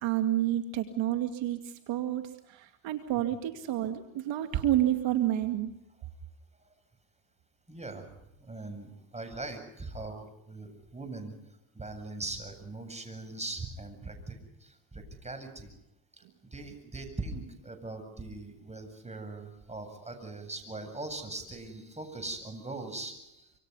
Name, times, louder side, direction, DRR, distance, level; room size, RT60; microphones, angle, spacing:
voice 1, 0.0-2.2 2.5-5.7, right 12 dB, 70° right, 7 dB, 2.3 m, -29 dB
voice 2, 7.7-8.1 8.4-11.3 11.7-15.7 16.5-23.5, right 2 dB, 15° right, 6 dB, 7.9 m, -41 dB
26.5 x 26.0 x 5.5 m, 0.84 s
supercardioid pair, 85°, 47 cm